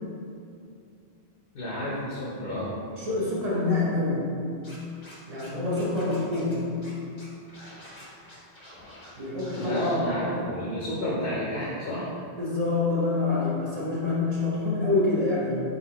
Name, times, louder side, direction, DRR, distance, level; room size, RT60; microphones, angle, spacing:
voice 1, 1.5-2.7 9.6-12.1, equal, 70° left, -7 dB, 1.0 m, -30 dB
voice 2, 3.0-4.3 5.3-6.7 9.2-9.8 12.4-15.6, left 3 dB, 40° right, -8 dB, 1.0 m, -26 dB
Scratching (performance technique), 4.6-5.5 5.8-6.5 6.8-6.9 7.2-9.1 9.4-9.9, left 1 dB, 30° left, 0.8 m, -47 dB
4.2 x 3.7 x 2.9 m, 2.5 s
omnidirectional pair, 1.1 m